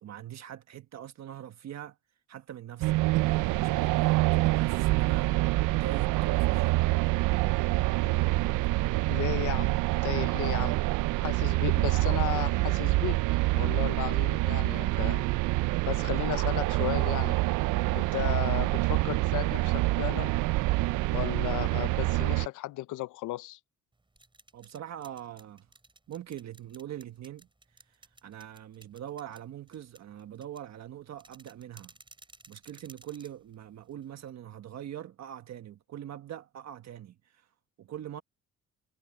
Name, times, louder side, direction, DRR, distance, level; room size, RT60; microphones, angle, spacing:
voice 1, 0.0-3.0 3.6-5.4 5.8-6.9 24.5-25.7 26.1-32.0 32.5-38.2, right 11 dB, 60° right, 1.3 m, -43 dB
sound 1, 2.8-22.5, right 20 dB, 85° right, 0.5 m, -26 dB
voice 2, 9.1-10.8 11.2-13.2 13.5-15.3 15.9-17.4 17.9-20.3 21.1-23.6, left 16 dB, 85° left, 0.7 m, -35 dB
sound 2, 23.9-34.3, right 2 dB, 15° right, 5.6 m, -58 dB
cardioid pair, 90°, 30 cm